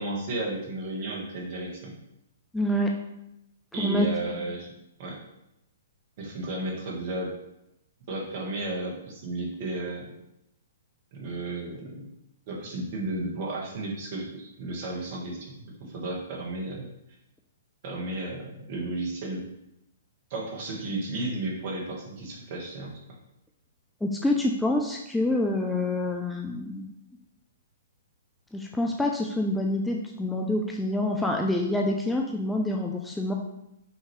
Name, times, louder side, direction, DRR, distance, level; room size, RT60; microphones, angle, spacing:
voice 1, 0.0-1.9 3.7-4.7 5.0-5.2 6.2-7.3 8.1-10.1 11.1-12.0 12.5-16.9 17.8-19.4 20.3-22.9, right 2 dB, 45° right, -2 dB, 1.3 m, -33 dB
voice 2, 2.5-2.9 3.8-4.1 24.0-26.9 28.5-33.3, left 1 dB, 5° left, 0 dB, 0.4 m, -27 dB
5.5 x 2.9 x 3.1 m, 0.84 s
figure-of-eight pair, 120°, 0 cm